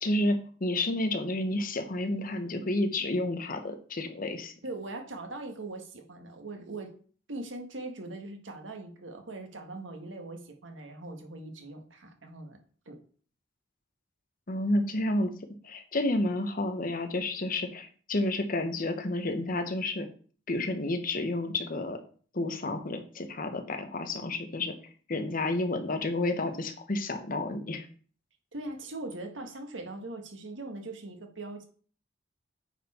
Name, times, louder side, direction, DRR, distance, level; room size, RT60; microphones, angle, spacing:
voice 1, 0.0-4.5 14.5-15.3 15.6-20.1 20.5-22.0 22.3-24.7 25.1-27.9, left 2 dB, 50° left, 7 dB, 1.0 m, -30 dB
voice 2, 4.6-6.9 7.3-12.6 12.8-13.0 28.5-31.6, right 2 dB, 90° right, 4 dB, 1.6 m, -41 dB
9.1 x 4.4 x 4.3 m, 0.43 s
head